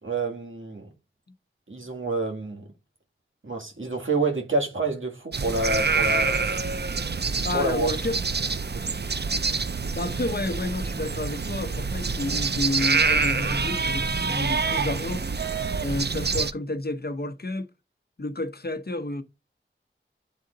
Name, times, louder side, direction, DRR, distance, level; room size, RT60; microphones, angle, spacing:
voice 1, 0.0-0.9 1.7-2.7 3.4-6.4 7.5-7.9, right 2 dB, 70° right, 2.1 m, -28 dB
sound 1, 5.3-16.5, right 4 dB, 50° right, 0.5 m, -26 dB
voice 2, 7.4-8.2 9.9-15.2 15.8-17.7 18.2-19.2, left 2 dB, 50° left, 0.8 m, -30 dB
9.3 x 3.8 x 3.9 m
wide cardioid pair, 50°, 21 cm